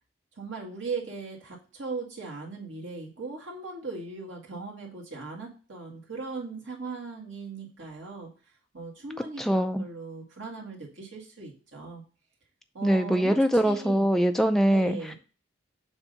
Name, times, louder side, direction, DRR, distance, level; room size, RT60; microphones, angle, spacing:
voice 1, 0.4-8.3 8.7-12.0 12.7-13.4 13.6-14.1 14.7-15.2, right 4 dB, 80° right, -3 dB, 1.9 m, -38 dB
voice 2, 9.4-9.8 12.8-15.0, right 1 dB, ahead, 6 dB, 0.4 m, -23 dB
7.1 x 2.7 x 5.3 m, 0.37 s
head